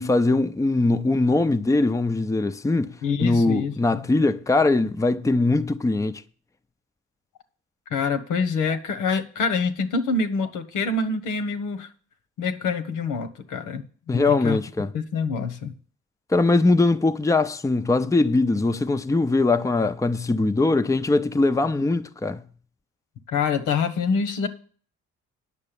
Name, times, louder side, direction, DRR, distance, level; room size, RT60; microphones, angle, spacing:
voice 1, 0.0-6.2 14.1-14.9 16.3-22.4, left 2 dB, 10° left, 0.6 m, -21 dB
voice 2, 3.0-4.1 7.9-11.9 12.4-14.6 14.9-15.7 23.3-24.5, left 4 dB, 85° left, 1.3 m, -26 dB
9.7 x 6.8 x 7.0 m
cardioid pair, 90°, 30 cm